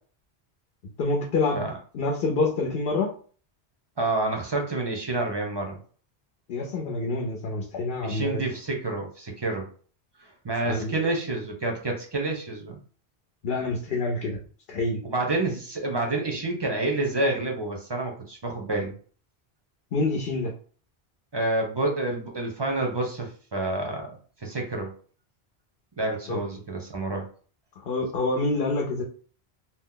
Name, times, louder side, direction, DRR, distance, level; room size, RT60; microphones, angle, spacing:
voice 1, 1.0-1.7 1.9-3.1 6.5-8.4 10.6-10.9 13.4-14.4 14.7-15.0 19.9-20.5 26.3-26.4 27.8-29.0, left 3 dB, 70° left, 1 dB, 0.8 m, -27 dB
voice 2, 4.0-5.8 8.0-9.7 10.4-12.8 15.0-18.9 21.3-24.9 26.0-27.3, right 2 dB, 30° right, 1 dB, 0.5 m, -28 dB
2.8 x 2.0 x 3.7 m, 0.43 s
omnidirectional pair, 1.1 m